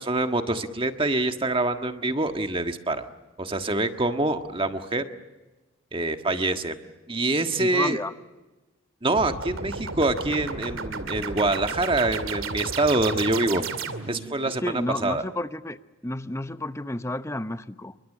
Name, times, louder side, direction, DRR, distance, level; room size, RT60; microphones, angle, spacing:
voice 1, 0.0-3.0 3.4-5.0 5.9-6.8 7.1-8.0 9.0-13.7 14.1-15.2, right 2 dB, 25° right, 7 dB, 1.5 m, -25 dB
voice 2, 7.6-8.1 14.4-15.8 16.0-17.9, left 1 dB, 15° left, 11 dB, 0.9 m, -31 dB
sound 1, 9.1-14.3, right 4 dB, 75° right, 2.5 m, -33 dB
28.5 x 24.0 x 7.4 m, 1.1 s
head